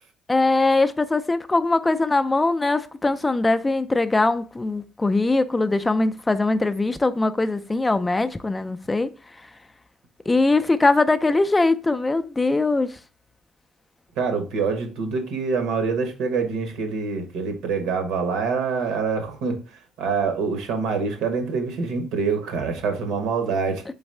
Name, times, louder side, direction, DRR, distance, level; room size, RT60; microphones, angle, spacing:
voice 1, 0.3-9.1 10.3-13.0, left 2 dB, 15° left, 0.3 m, -21 dB
voice 2, 14.2-19.6 20.0-23.8, right 5 dB, 85° right, 1.0 m, -25 dB
4.0 x 3.5 x 3.2 m
cardioid pair, 100°, 0 cm